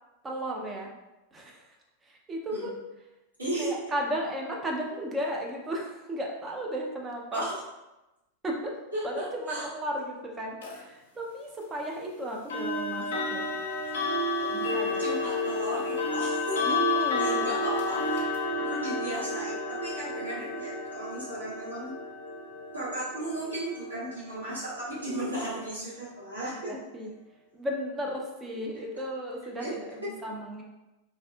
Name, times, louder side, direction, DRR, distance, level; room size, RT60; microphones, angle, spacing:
voice 1, 0.2-0.9 1.3-1.8 2.0-2.8 3.6-7.5 8.4-8.7 9.0-13.4 14.4-15.1 16.7-17.5 26.6-27.1 27.5-30.6, equal, 15° right, 0 dB, 0.5 m, -35 dB
voice 2, 3.4-3.7 7.3-7.5 8.9-9.7 15.0-16.7 17.2-18.2 18.6-21.9 22.7-26.7 28.9-29.0 29.6-29.7, right 1 dB, 80° right, -11 dB, 1.3 m, -35 dB
sound 1, 10.6-10.8 12.5-25.3, left 2 dB, 60° left, 0.5 m, -31 dB
2.5 x 2.4 x 2.3 m, 1.0 s
figure-of-eight pair, 90°, 0 cm